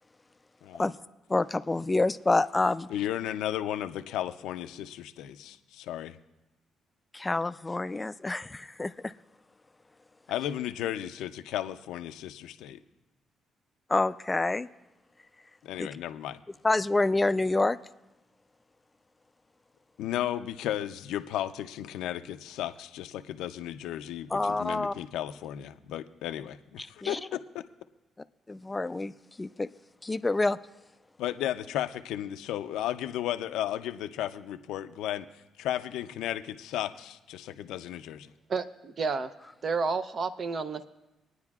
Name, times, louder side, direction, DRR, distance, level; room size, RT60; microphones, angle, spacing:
voice 1, 1.3-2.9 7.1-9.1 13.9-14.7 15.8-15.9 16.6-17.8 24.3-24.9 26.8-27.2 28.5-29.1 29.4-29.7 30.0-30.6, left 2 dB, 20° left, 14 dB, 0.3 m, -27 dB
voice 2, 2.9-6.2 10.3-12.8 15.6-16.4 20.0-27.6 31.2-38.3, left 12 dB, 90° left, 10 dB, 0.5 m, -34 dB
voice 3, 38.5-39.3 39.6-40.9, right 4 dB, 50° right, 11 dB, 0.6 m, -30 dB
26.0 x 9.7 x 2.4 m, 1.0 s
cardioid pair, 90°, 0 cm